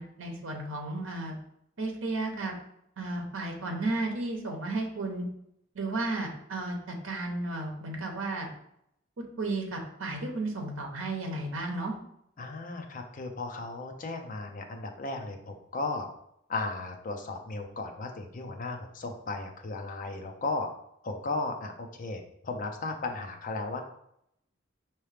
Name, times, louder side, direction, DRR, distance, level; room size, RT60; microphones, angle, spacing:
voice 1, 0.0-1.4 1.8-2.5 3.0-5.3 5.7-8.5 9.2-11.9, right 2 dB, 80° right, 2 dB, 0.8 m, -33 dB
voice 2, 12.4-16.1 16.5-20.7 21.0-23.8, left 3 dB, 45° left, 4 dB, 0.5 m, -35 dB
4.7 x 3.0 x 3.3 m, 0.75 s
head